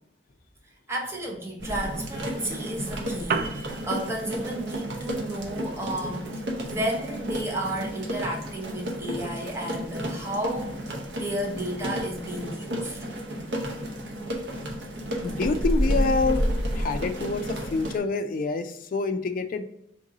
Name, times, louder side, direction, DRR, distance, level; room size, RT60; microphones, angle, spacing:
voice 1, 0.9-13.0, right 1 dB, 15° right, -1 dB, 0.7 m, -32 dB
sound 1, 1.6-18.0, equal, 70° right, 0.7 m, -31 dB
Piano, 3.0-12.0, right 5 dB, 50° right, 0.3 m, -40 dB
voice 2, 15.2-16.4 16.7-19.6, left 3 dB, 50° left, 7 dB, 0.3 m, -27 dB
3.6 x 2.6 x 3.9 m, 0.75 s
head